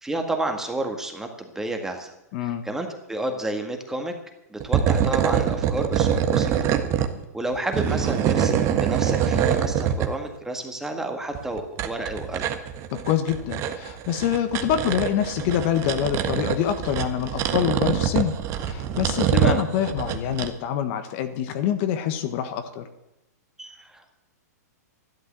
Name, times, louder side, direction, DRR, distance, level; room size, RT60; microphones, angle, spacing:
voice 1, 0.0-2.1 2.4-4.1 4.5-6.5 7.3-12.5 19.3-19.5 23.6-24.1, right 2 dB, 5° right, 4 dB, 1.9 m, -30 dB
voice 2, 2.3-2.6 12.9-18.3 18.6-22.9, left 10 dB, 45° left, 8 dB, 1.5 m, -25 dB
sound 1, 4.6-7.1 7.5-10.1 11.4-20.5, right 9 dB, 30° right, 1.5 m, -24 dB
13.0 x 12.0 x 7.6 m, 0.88 s
hypercardioid pair, 140°, 9 cm